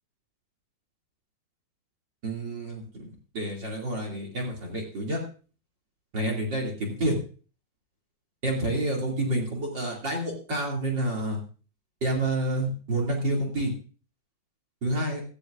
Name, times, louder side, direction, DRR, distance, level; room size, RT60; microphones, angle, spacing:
voice 1, 2.2-5.2 6.1-7.2 8.4-11.4 12.0-13.7 14.8-15.2, right 1 dB, 35° right, 0 dB, 2.4 m, -29 dB
16.5 x 13.5 x 2.4 m, 0.37 s
omnidirectional pair, 4.7 m